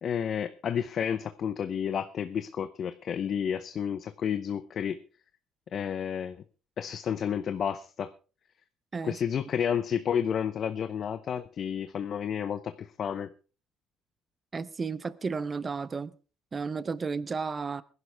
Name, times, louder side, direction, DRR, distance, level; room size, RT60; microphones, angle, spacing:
voice 1, 0.0-5.0 5.7-6.4 6.8-8.1 9.0-13.3, left 8 dB, 45° left, 11 dB, 0.6 m, -31 dB
voice 2, 14.5-16.1 16.5-17.8, right 5 dB, 25° right, 18 dB, 0.7 m, -33 dB
20.0 x 11.0 x 3.5 m, 0.35 s
cardioid pair, 130°, 0 cm